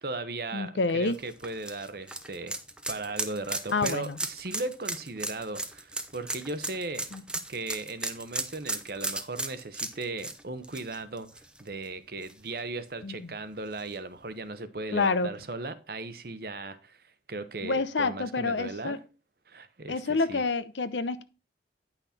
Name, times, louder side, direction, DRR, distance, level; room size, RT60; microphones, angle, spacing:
voice 1, 0.0-2.6 2.9-7.1 7.5-19.0 19.5-20.4, right 3 dB, 55° right, 0.9 m, -37 dB
voice 2, 0.5-1.2 3.7-4.2 7.1-7.2 13.0-13.3 14.9-15.3 17.6-19.0 19.9-21.2, left 3 dB, 85° left, 0.8 m, -28 dB
sound 1, 1.1-11.8 12.2-12.3 13.8-13.9, right 2 dB, 5° right, 0.7 m, -35 dB
9.9 x 5.9 x 4.3 m
head